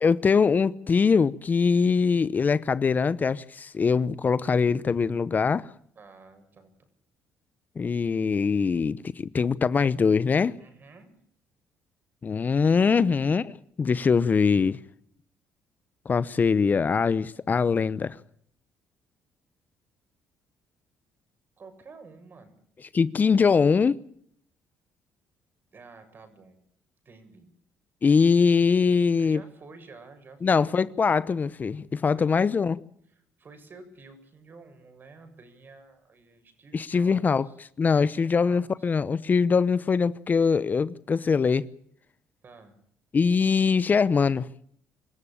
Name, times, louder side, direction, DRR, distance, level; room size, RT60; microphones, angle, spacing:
voice 1, 0.0-5.7 7.8-10.6 12.2-14.8 16.0-18.2 22.9-24.0 28.0-29.4 30.4-32.8 36.7-37.5 37.8-41.7 43.1-44.5, left 5 dB, 35° left, 0.9 m, -22 dB
voice 2, 6.0-6.7 10.6-11.1 21.6-22.6 25.7-26.6 27.0-27.5 29.2-30.8 32.1-32.4 33.1-37.6 37.9-38.9 42.4-42.8, right 4 dB, 40° right, 7.3 m, -50 dB
26.0 x 15.0 x 8.8 m
supercardioid pair, 75°, 5 cm